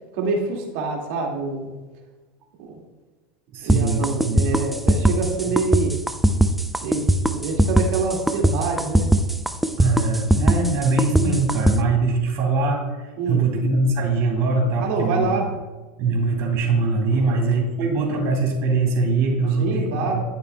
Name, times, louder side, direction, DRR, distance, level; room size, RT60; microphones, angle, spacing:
voice 1, 0.1-1.7 2.6-2.8 3.6-6.0 6.8-7.1 7.3-9.1 13.2-13.4 14.8-15.5 17.1-17.4 19.6-20.2, right 4 dB, 65° right, 0 dB, 2.0 m, -26 dB
voice 2, 3.5-4.5 9.8-12.8 13.3-15.3 16.0-20.2, right 3 dB, 50° right, 0 dB, 2.7 m, -22 dB
sound 1, 3.7-11.8, right 1 dB, ahead, 0.5 m, -19 dB
12.0 x 6.7 x 2.2 m, 1.2 s
hypercardioid pair, 105°, 6 cm